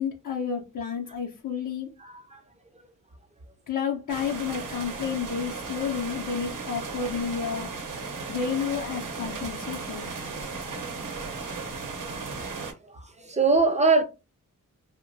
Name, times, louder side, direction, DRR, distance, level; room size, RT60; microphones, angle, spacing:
voice 1, 0.0-1.9 3.7-7.7 8.3-10.1, left 7 dB, 65° left, 0.6 m, -31 dB
voice 2, 2.0-2.4 10.9-11.0 12.0-12.2 12.9-14.0, right 4 dB, 20° right, 0.5 m, -23 dB
sound 1, 4.1-12.7, right 4 dB, 70° right, 0.7 m, -36 dB
2.7 x 2.1 x 2.6 m
cardioid pair, 55°, 33 cm